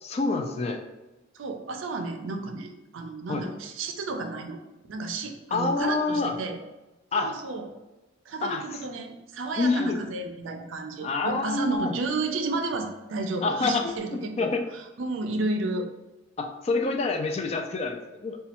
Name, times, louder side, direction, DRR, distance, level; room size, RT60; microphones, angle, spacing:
voice 1, 0.0-0.8 3.3-3.4 5.5-6.4 7.1-7.3 8.4-8.8 9.6-10.0 11.0-11.9 13.4-14.6 16.4-18.4, left 3 dB, 35° left, 4 dB, 0.3 m, -27 dB
voice 2, 1.3-4.6 4.9-6.6 7.2-7.7 8.3-15.9, right 3 dB, 80° right, 5 dB, 0.4 m, -32 dB
4.1 x 2.3 x 2.8 m, 1.1 s
head